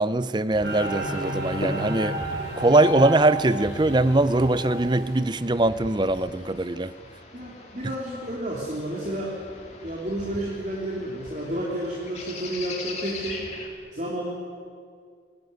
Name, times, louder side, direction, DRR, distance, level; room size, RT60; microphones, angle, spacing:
voice 1, 0.0-2.2 2.6-6.9, right 2 dB, 25° right, 15 dB, 0.6 m, -22 dB
sound 1, 0.5-13.7, left 2 dB, 35° left, 3.1 m, -41 dB
sound 2, 0.6-5.2, right 1 dB, 65° right, 5.6 m, -31 dB
voice 2, 7.3-9.3 9.8-13.4 13.9-14.3, right 1 dB, 40° right, -5 dB, 3.3 m, -31 dB
24.5 x 17.5 x 9.6 m, 2.2 s
head